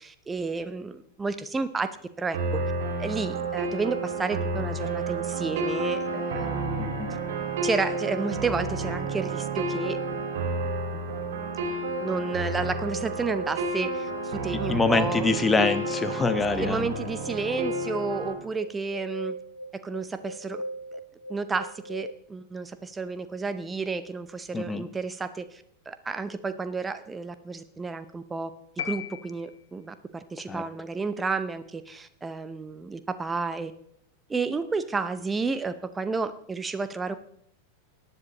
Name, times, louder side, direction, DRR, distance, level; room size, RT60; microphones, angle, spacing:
voice 1, 0.0-2.6 3.0-7.0 7.6-10.0 12.0-15.3 16.6-19.4 19.7-20.6 20.9-21.0 21.3-28.5 28.8-33.7 34.3-37.1, right 4 dB, 15° right, 11 dB, 0.7 m, -31 dB
sound 1, 2.3-18.3, right 3 dB, 55° right, 2.8 m, -31 dB
voice 2, 6.8-7.2 14.7-16.9 24.5-24.8 30.5-30.6, left 3 dB, 15° left, 11 dB, 1.0 m, -25 dB
sound 2, 12.8-22.1, equal, 80° left, 0.6 m, -39 dB
sound 3, 28.8-30.0, left 10 dB, 60° left, 0.9 m, -37 dB
18.0 x 10.0 x 3.0 m, 0.70 s
figure-of-eight pair, 90°, 0 cm